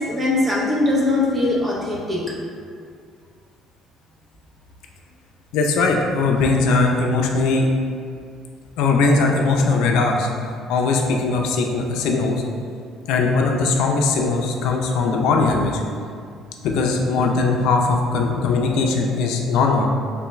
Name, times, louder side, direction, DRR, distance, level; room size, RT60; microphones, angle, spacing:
voice 1, 0.0-2.4, left 2 dB, 15° right, -5 dB, 0.6 m, -21 dB
voice 2, 5.5-7.7 8.8-10.3 10.7-12.4 13.1-15.8 16.6-19.9, left 3 dB, 80° left, 2 dB, 0.4 m, -19 dB
3.4 x 3.1 x 3.1 m, 2.2 s
cardioid pair, 175°, 0 cm